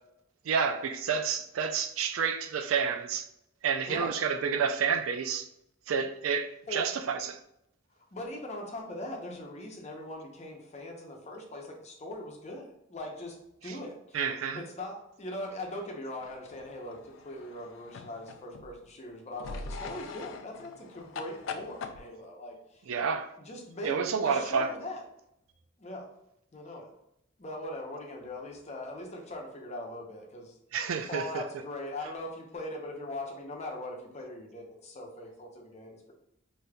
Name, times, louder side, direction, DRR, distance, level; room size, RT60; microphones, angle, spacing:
voice 1, 0.5-3.3 3.6-5.5 5.9-7.4 13.7-13.8 14.1-14.6 22.9-23.3 23.8-24.7 30.7-31.4, right 6 dB, 85° right, 0.4 m, -29 dB
voice 2, 3.9-4.2 6.7-6.9 8.1-14.2 14.5-22.8 23.4-24.0 24.2-25.0 25.8-26.1 26.5-26.9 27.4-30.5 31.1-36.1, left 1 dB, 35° left, 0.7 m, -40 dB
sound 1, 16.2-18.8 19.4-22.0, left 4 dB, 70° left, 0.4 m, -42 dB
4.9 x 2.8 x 2.3 m
head